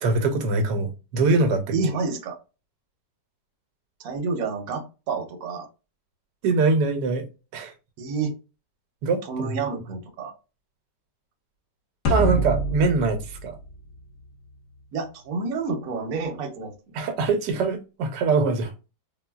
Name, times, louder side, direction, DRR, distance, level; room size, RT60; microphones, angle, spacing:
voice 1, 0.0-1.7 6.4-7.3 7.5-7.7 9.0-9.6 12.1-13.6 16.9-18.7, right 3 dB, 80° right, 1.2 m, -23 dB
voice 2, 1.7-2.4 4.0-5.7 8.0-8.3 9.2-10.3 14.9-17.0, right 4 dB, 65° right, 1.0 m, -29 dB
sound 1, 12.1-14.5, right 1 dB, 75° left, 1.4 m, -26 dB
3.8 x 2.2 x 2.2 m
omnidirectional pair, 1.9 m